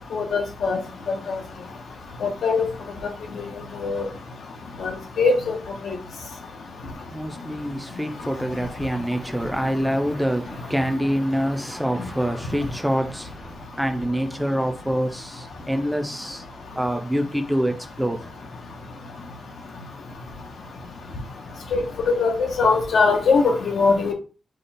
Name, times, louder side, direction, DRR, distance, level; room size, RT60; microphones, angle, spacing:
voice 1, 0.1-0.8 1.3-1.4 2.2-2.7 3.4-3.5 3.8-4.1 4.8-5.3 5.8-5.9 21.7-24.1, left 4 dB, 80° left, 1.0 m, -21 dB
voice 2, 6.9-16.5 16.7-18.3 21.5-21.6, equal, ahead, 0.5 m, -26 dB
5.1 x 2.3 x 4.2 m
wide cardioid pair, 180°, 0 cm